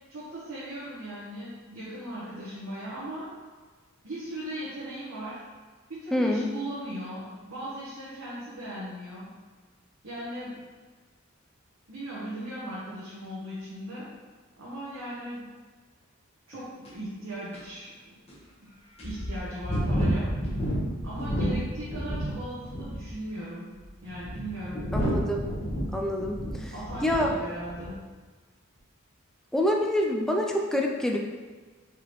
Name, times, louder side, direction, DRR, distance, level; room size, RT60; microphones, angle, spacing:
voice 1, 0.1-3.3 4.0-5.4 5.9-9.3 10.0-10.6 11.9-14.2 14.6-15.5 16.5-18.1 19.0-20.3 21.0-23.7 24.0-24.9 26.7-28.1, right 1 dB, 65° right, -10 dB, 1.1 m, -38 dB
voice 2, 6.1-6.5 24.9-25.5 25.9-26.7 27.0-27.3 29.5-31.2, left 1 dB, ahead, 0 dB, 0.3 m, -26 dB
sound 1, 16.8-16.9 17.5-17.6 18.3-18.4 19.0-22.3 22.6-23.1 23.8-27.3 27.6-27.9, equal, 30° left, 1.1 m, -30 dB
4.7 x 3.6 x 3.1 m, 1.4 s
head